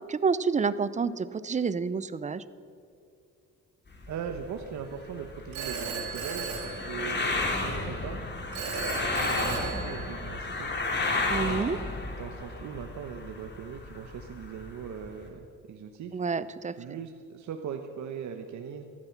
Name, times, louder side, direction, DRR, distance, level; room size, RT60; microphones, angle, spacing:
voice 1, 0.1-2.4 11.3-11.8 16.1-16.7, right 5 dB, 25° right, 16 dB, 0.6 m, -28 dB
sound 1, 3.9-15.2, left 2 dB, 35° left, 2.5 m, -33 dB
voice 2, 4.1-8.2 8.8-10.7 12.2-16.1 16.8-18.8, right 7 dB, 70° right, 5 dB, 1.0 m, -40 dB
Telephone, 5.5-7.5 8.5-10.5, right 5 dB, 90° right, 3.2 m, -36 dB
14.5 x 12.0 x 5.9 m, 2.5 s
cardioid pair, 90°, 30 cm